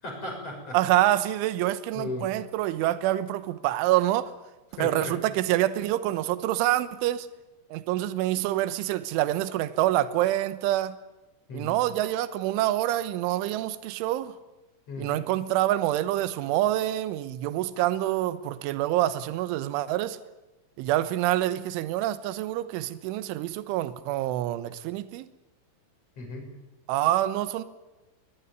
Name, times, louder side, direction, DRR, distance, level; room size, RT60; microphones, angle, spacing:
voice 1, 0.0-0.8 1.9-2.3 4.8-5.2 11.5-11.9 14.9-15.2 26.2-26.5, left 2 dB, 30° left, 7.2 m, -36 dB
voice 2, 0.7-4.3 4.8-7.3 7.7-11.0 11.5-14.3 15.0-20.2 20.8-25.3 26.9-27.6, right 14 dB, 80° right, 3.4 m, -26 dB
22.0 x 20.5 x 9.7 m
omnidirectional pair, 5.8 m